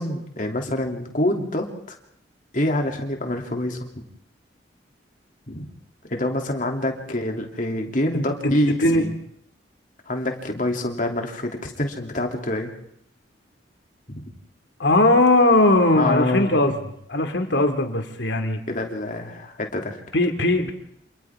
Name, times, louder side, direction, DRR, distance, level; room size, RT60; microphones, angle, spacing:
voice 1, 0.0-2.0 2.5-4.0 5.5-5.7 6.1-9.1 10.1-12.7 14.1-14.2 15.9-16.5 18.7-20.0, left 1 dB, 45° left, 2 dB, 3.0 m, -26 dB
voice 2, 8.1-9.0 14.8-16.8 17.1-18.6 20.1-20.7, left 2 dB, 70° left, 6 dB, 2.5 m, -19 dB
28.5 x 27.5 x 3.7 m, 0.69 s
head